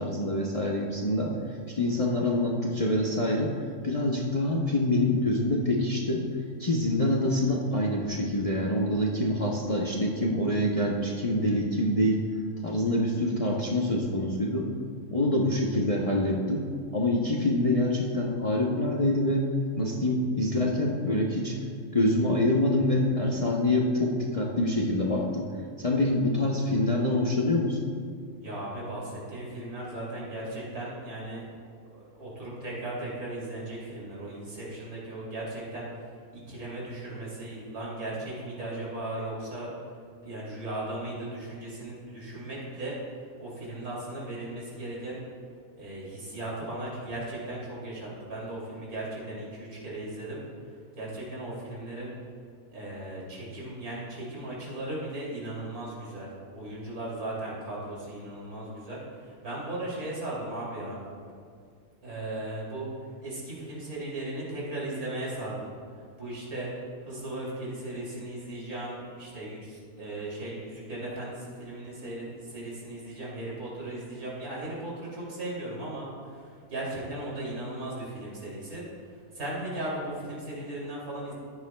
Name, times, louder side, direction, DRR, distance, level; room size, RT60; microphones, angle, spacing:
voice 1, 0.0-1.3 1.7-3.5 3.8-6.2 6.6-12.2 12.6-14.7 15.1-16.7 16.9-19.5 19.8-21.5 21.9-25.5 25.8-27.9, left 1 dB, 30° left, -3 dB, 0.7 m, -26 dB
voice 2, 28.4-31.5 31.8-35.8 36.3-39.7 40.2-42.9 43.4-45.2 45.8-50.4 51.0-52.1 52.7-56.3 56.5-61.0 62.0-62.9 63.2-65.7 66.2-66.7 67.0-76.1 76.7-78.8 79.3-81.3, right 1 dB, 75° right, -5 dB, 3.4 m, -37 dB
15.0 x 9.6 x 2.3 m, 2.2 s
omnidirectional pair, 1.5 m